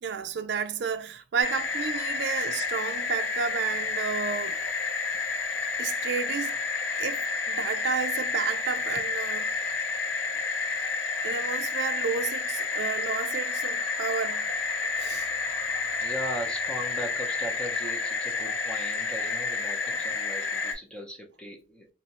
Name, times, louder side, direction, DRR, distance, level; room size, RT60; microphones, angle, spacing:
voice 1, 0.0-4.6 5.8-6.6 7.0-9.5 11.2-14.5 15.0-15.3, right 6 dB, 65° right, 0.4 m, -31 dB
sound 1, 1.4-20.7, left 4 dB, 80° left, 0.6 m, -30 dB
voice 2, 16.0-21.9, equal, 5° left, 0.7 m, -38 dB
2.8 x 2.3 x 4.1 m
head